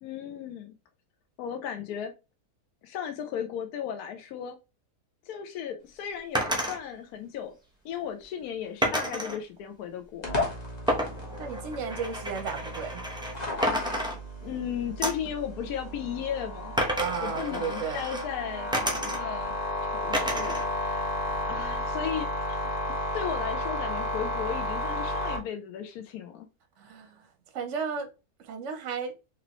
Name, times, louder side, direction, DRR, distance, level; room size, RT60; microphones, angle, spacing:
voice 1, 0.0-0.7 1.4-2.1 2.8-4.5 5.3-7.5 7.8-10.4 14.4-16.8 17.2-19.5 19.8-21.1 21.4-22.7 23.1-26.5, left 8 dB, 75° left, 1.1 m, -36 dB
sound 1, 6.3-6.8 8.8-9.4 10.9-13.4 13.6-14.6 15.0-15.3 16.8-18.3 18.7-19.5 20.1-20.7 21.0-21.8, equal, 5° right, 0.4 m, -30 dB
sound 2, 10.2-25.4, left 1 dB, 30° left, 1.1 m, -33 dB
voice 2, 11.4-13.0 17.0-18.0 26.8-27.3 27.5-28.1 28.4-29.1, right 6 dB, 60° right, 0.8 m, -34 dB
3.9 x 3.0 x 2.9 m
omnidirectional pair, 1.7 m